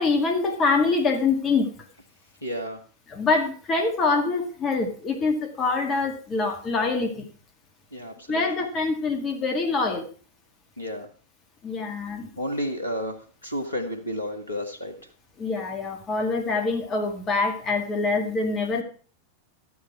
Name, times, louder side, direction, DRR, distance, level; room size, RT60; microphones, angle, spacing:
voice 1, 0.0-1.7 3.1-7.3 8.3-10.1 11.6-12.3 15.4-18.8, left 3 dB, 25° left, 3 dB, 1.9 m, -25 dB
voice 2, 2.4-2.8 7.9-8.4 10.8-11.1 12.3-15.0, equal, 80° left, 4 dB, 1.5 m, -31 dB
13.0 x 7.1 x 4.8 m, 0.40 s
figure-of-eight pair, 90°, 0 cm